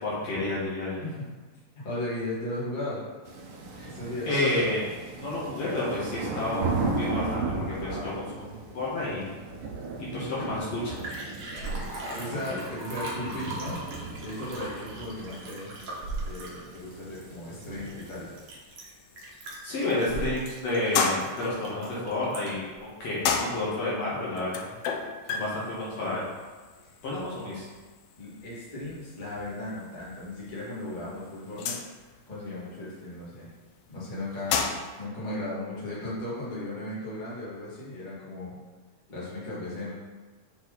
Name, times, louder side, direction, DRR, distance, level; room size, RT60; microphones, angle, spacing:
voice 1, 0.0-1.0 3.7-3.9 4.3-4.8 5.1-8.5 8.7-9.3 10.0-11.0 19.6-24.7 25.3-26.2 27.0-27.7, left 2 dB, 60° left, -8 dB, 2.6 m, -30 dB
voice 2, 1.8-3.1 3.8-4.3 7.8-8.2 11.4-13.8 14.2-15.7 16.3-18.3 27.3-27.8 28.2-31.8 32.3-33.5 33.9-38.6 39.1-39.9, left 1 dB, 15° left, -9 dB, 2.0 m, -36 dB
sound 1, 3.2-18.5, right 3 dB, 75° right, 1.2 m, -36 dB
Liquid, 10.8-22.7 23.2-23.3, right 2 dB, 55° right, 1.7 m, -39 dB
sound 2, 16.8-35.0, left 5 dB, 80° left, 1.7 m, -35 dB
7.1 x 4.6 x 4.1 m, 1.3 s
omnidirectional pair, 3.6 m